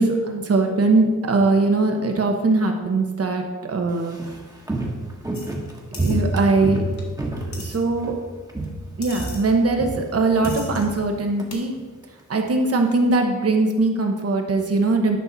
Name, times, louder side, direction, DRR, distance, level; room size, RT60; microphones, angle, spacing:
voice 1, 0.0-3.4 3.7-4.2 6.0-6.8 7.4-8.1 9.0-11.7 12.3-15.2, right 3 dB, 55° right, 3 dB, 1.2 m, -21 dB
Walk footsteps, 3.9-8.2 8.5-8.9 9.2-11.5 11.8-11.9, right 1 dB, 10° right, 1.3 m, -28 dB
sound 1, 5.3-5.5 5.9-6.2 7.0-7.1 7.5-7.8 9.0-9.4 10.4-10.9 11.5-11.6, left 3 dB, 70° left, 1.8 m, -38 dB
11.0 x 5.8 x 4.1 m, 1.3 s
wide cardioid pair, 135°, 29 cm